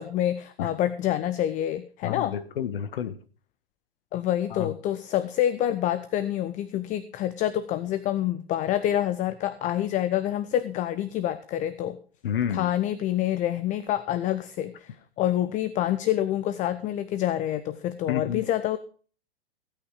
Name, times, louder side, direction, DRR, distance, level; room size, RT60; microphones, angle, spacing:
voice 1, 0.0-2.3 4.1-12.0 12.5-18.8, left 12 dB, 25° left, 13 dB, 0.7 m, -27 dB
voice 2, 2.0-3.2 4.5-4.7 12.2-12.7 18.1-18.4, left 9 dB, 60° left, 13 dB, 1.4 m, -30 dB
16.5 x 8.9 x 4.8 m, 0.40 s
figure-of-eight pair, 105°, 31 cm